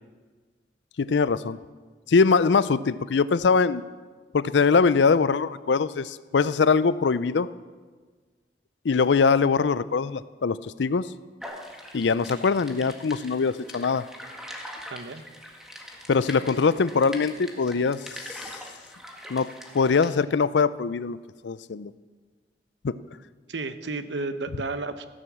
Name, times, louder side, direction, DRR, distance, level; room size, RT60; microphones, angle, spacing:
voice 1, 1.0-1.6 2.1-3.8 4.3-7.5 8.8-11.1 11.9-14.1 16.1-18.5 19.3-21.2 21.4-21.9 22.8-23.0, left 5 dB, 85° left, 17 dB, 0.5 m, -22 dB
sound 1, 11.4-20.1, equal, 5° right, 1.7 m, -42 dB
voice 2, 14.9-15.2 23.5-25.0, right 3 dB, 90° right, 10 dB, 0.9 m, -32 dB
15.0 x 11.0 x 7.3 m, 1.4 s
head